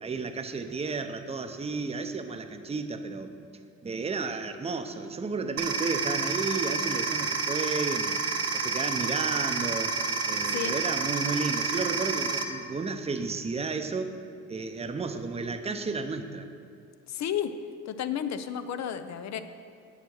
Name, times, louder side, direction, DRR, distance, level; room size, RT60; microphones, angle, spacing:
voice 1, 0.0-3.3 3.8-8.2 8.5-10.0 10.3-14.2 14.5-16.5, right 4 dB, 20° right, 7 dB, 0.7 m, -32 dB
sound 1, 5.6-12.4, right 4 dB, 50° right, 1.0 m, -29 dB
voice 2, 10.4-10.8 17.1-17.5 17.9-19.4, left 9 dB, 65° left, 11 dB, 0.7 m, -32 dB
8.8 x 7.2 x 6.4 m, 2.4 s
cardioid pair, 90°, 30 cm